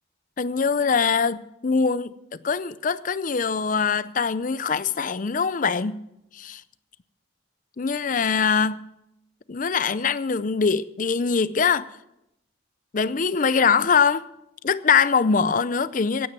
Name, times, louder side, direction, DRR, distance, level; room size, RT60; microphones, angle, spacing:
voice 1, 0.4-2.1 2.4-6.0 6.3-6.6 7.8-8.8 9.5-11.9 12.9-14.3 14.6-16.3, left 5 dB, 40° left, 0.5 m, -22 dB
16.0 x 9.4 x 6.0 m
head